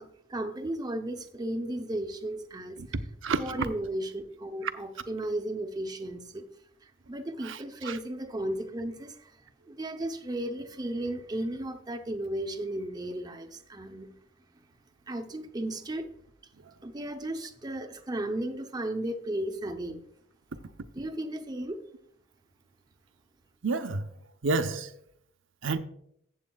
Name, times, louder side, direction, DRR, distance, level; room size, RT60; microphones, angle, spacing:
voice 1, 0.0-2.8 3.4-6.5 6.8-14.1 14.5-14.6 15.1-16.1 16.8-20.0 20.9-21.8, right 1 dB, 20° right, 0.7 m, -35 dB
voice 2, 3.2-3.7 4.6-4.7 7.4-8.0 16.6-16.7 23.6-24.1 24.4-24.9 25.6-25.8, right 3 dB, 80° right, 0.7 m, -30 dB
14.5 x 7.9 x 2.3 m
head